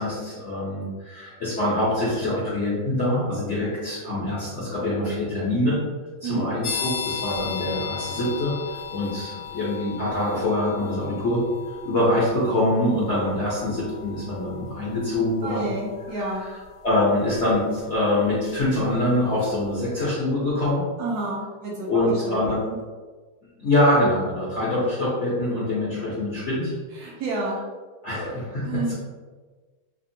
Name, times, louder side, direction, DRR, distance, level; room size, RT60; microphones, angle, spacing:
voice 1, 0.0-5.8 6.2-11.4 11.7-15.7 16.1-20.8 21.9-22.6 23.6-26.7 28.0-28.9, left 1 dB, 65° left, -9 dB, 0.7 m, -24 dB
sound 1, 6.6-19.2, left 7 dB, 80° left, 1.3 m, -37 dB
voice 2, 15.4-16.5 21.0-22.8 27.0-27.6 28.6-28.9, right 2 dB, 70° right, -3 dB, 0.9 m, -30 dB
3.5 x 2.1 x 2.6 m, 1.4 s
omnidirectional pair, 2.1 m